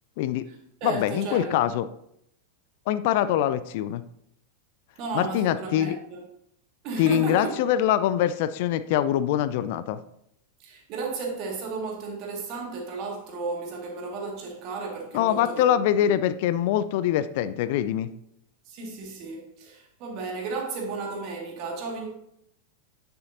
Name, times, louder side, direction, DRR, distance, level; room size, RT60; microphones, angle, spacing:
voice 1, 0.2-0.5 0.8-1.9 2.9-4.0 5.1-6.0 7.0-10.0 15.1-18.1, left 11 dB, 50° left, 0.3 m, -24 dB
voice 2, 0.8-1.5 5.0-6.2 6.8-7.5 10.6-15.7 16.0-16.1 18.7-22.1, right 4 dB, 40° right, 2.0 m, -34 dB
9.4 x 6.9 x 2.7 m
figure-of-eight pair, 90°, 0 cm